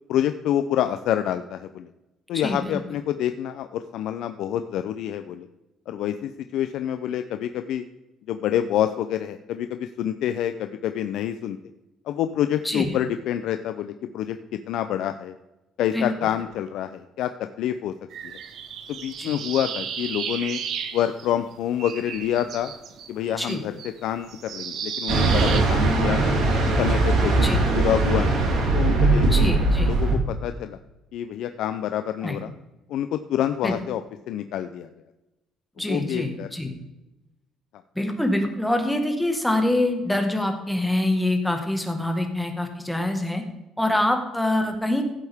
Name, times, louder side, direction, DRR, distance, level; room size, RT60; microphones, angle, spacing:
voice 1, 0.1-1.9 2.3-5.5 5.9-7.9 8.3-11.6 12.1-14.4 14.7-15.3 15.8-17.3 17.6-17.9 18.2-18.3 18.9-20.6 20.9-22.7 23.1-23.8 24.0-26.4 26.8-27.5 27.8-28.4 28.7-29.5 29.8-30.8 31.1-32.5 32.9-34.0 34.3-34.9 35.9-36.5, left 10 dB, 70° left, 9 dB, 0.5 m, -27 dB
voice 2, 2.4-2.8 12.6-13.0 15.9-16.1 19.2-19.4 23.4-23.6 27.4-27.6 29.3-30.0 32.2-32.4 33.6-33.7 35.8-36.7 38.0-43.4 43.8-45.0, left 1 dB, 5° left, 4 dB, 1.6 m, -25 dB
sound 1, 18.1-21.5 21.8-25.6, right 7 dB, 55° right, 1.3 m, -34 dB
sound 2, 25.1-30.1, right 3 dB, 75° right, 3.6 m, -20 dB
15.5 x 8.1 x 3.6 m, 0.99 s
cardioid pair, 145°, 0 cm